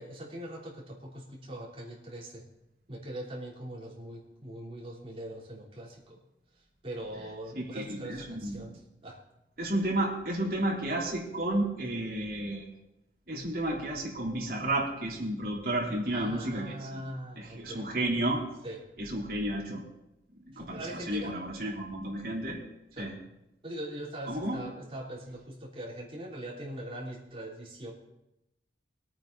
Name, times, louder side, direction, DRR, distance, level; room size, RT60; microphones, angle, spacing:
voice 1, 0.0-2.4 2.9-6.2 6.8-9.2 16.1-17.9 18.6-18.8 20.5-21.4 23.0-23.1 23.6-27.9, right 1 dB, 30° right, -4 dB, 3.4 m, -41 dB
voice 2, 7.7-8.7 9.6-12.7 13.3-17.0 17.4-18.4 19.0-19.8 20.5-22.6 23.0-23.2 24.2-24.6, right 1 dB, 55° right, -3 dB, 3.5 m, -32 dB
22.0 x 8.7 x 4.0 m, 0.88 s
head